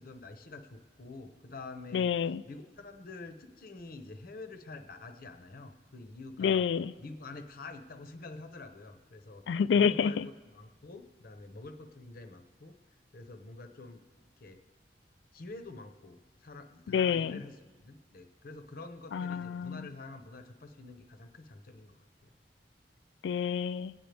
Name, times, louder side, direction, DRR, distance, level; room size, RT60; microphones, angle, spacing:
voice 1, 0.0-2.1 2.4-6.6 7.0-9.4 9.7-10.2 10.5-12.7 13.1-14.0 14.4-14.6 15.3-22.3, left 3 dB, 55° left, 0.8 m, -47 dB
voice 2, 1.9-2.4 6.4-6.9 9.5-10.3 16.9-17.4 19.1-19.9 23.2-23.9, left 7 dB, 80° left, 0.3 m, -28 dB
24.5 x 9.2 x 3.4 m
head